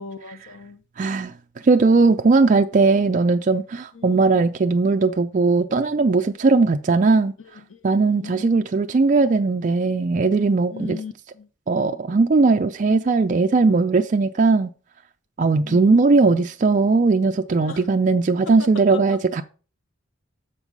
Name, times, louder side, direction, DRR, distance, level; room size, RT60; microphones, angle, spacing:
voice 1, 0.0-0.8 3.9-4.4 7.7-7.8 8.1-8.5 10.7-11.5 15.6-15.9 17.6-17.8 18.6-19.2, left 4 dB, 70° left, 0.7 m, -37 dB
voice 2, 1.0-1.3 1.6-7.3 7.8-11.0 11.7-14.7 15.4-19.4, right 3 dB, 40° right, 0.4 m, -18 dB
7.2 x 5.4 x 4.7 m
head